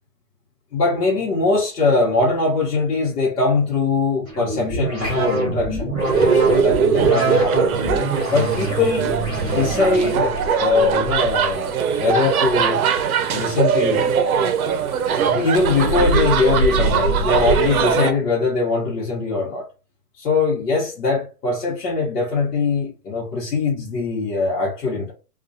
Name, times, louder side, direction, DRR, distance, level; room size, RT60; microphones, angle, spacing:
voice 1, 0.7-5.9 6.1-7.7 8.3-9.1 9.4-12.8 13.3-14.1 15.3-19.7 20.2-25.1, left 3 dB, 75° left, 1.1 m, -21 dB
sound 1, 4.2-10.6, right 1 dB, 5° left, 0.4 m, -25 dB
sound 2, 6.0-18.1, right 6 dB, 65° right, 0.6 m, -20 dB
2.4 x 2.3 x 2.7 m
hypercardioid pair, 140°, 47 cm